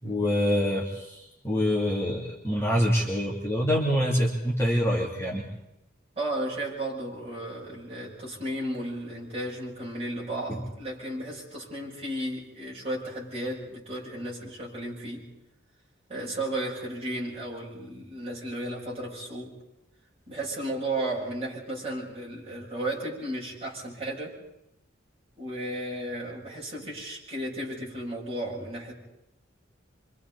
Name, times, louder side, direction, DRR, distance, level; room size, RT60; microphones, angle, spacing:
voice 1, 0.0-5.4 10.5-10.6, equal, 15° left, -4 dB, 3.0 m, -26 dB
voice 2, 6.2-15.2 16.1-19.5 20.3-24.4 25.4-28.9, right 1 dB, 30° right, -5 dB, 7.5 m, -34 dB
28.0 x 25.5 x 4.2 m, 0.85 s
head